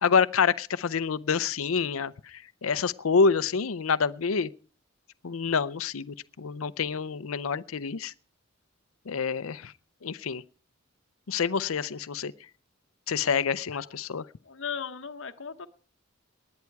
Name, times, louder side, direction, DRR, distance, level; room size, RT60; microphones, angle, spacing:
voice 1, 0.0-4.5 5.2-8.1 9.1-9.7 10.0-10.4 11.3-12.3 13.1-14.2, left 5 dB, 85° left, 0.6 m, -27 dB
voice 2, 14.4-15.7, left 6 dB, 60° left, 0.9 m, -38 dB
19.0 x 10.5 x 4.7 m
head